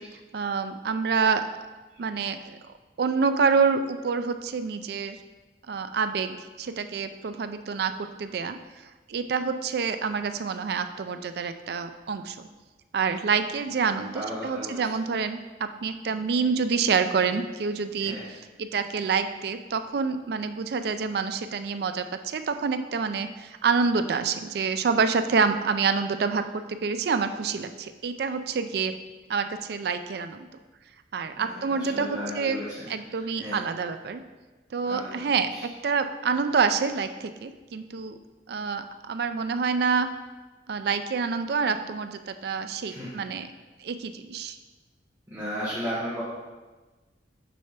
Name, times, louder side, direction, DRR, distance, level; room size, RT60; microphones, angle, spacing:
voice 1, 0.3-1.5 2.0-2.6 3.0-5.2 5.7-8.6 9.1-12.5 12.9-29.0 29.3-30.5 31.1-32.6 32.9-34.2 34.7-38.2 38.5-40.1 40.7-43.5 43.8-44.6, right 5 dB, 60° right, 9 dB, 0.4 m, -27 dB
voice 2, 14.1-14.8 18.0-18.3 31.3-32.6 33.4-33.6 34.9-35.2 35.5-35.6 42.9-43.1 45.3-46.2, equal, 15° right, -11 dB, 1.4 m, -34 dB
6.2 x 3.4 x 5.7 m, 1.2 s
head